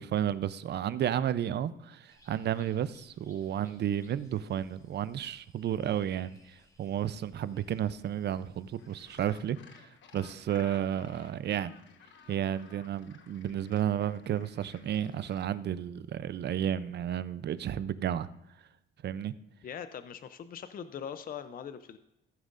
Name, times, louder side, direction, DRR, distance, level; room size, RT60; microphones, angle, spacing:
voice 1, 0.0-11.7 12.3-18.3 19.0-19.3, right 10 dB, 60° right, 0.5 m, -32 dB
sound 1, 2.1-9.4, left 1 dB, 15° left, 3.8 m, -64 dB
Gull seagull, 8.8-15.5, left 6 dB, 70° left, 1.1 m, -56 dB
voice 2, 19.6-22.0, left 8 dB, 45° left, 0.5 m, -41 dB
15.0 x 9.1 x 2.5 m
cardioid pair, 90°, 20 cm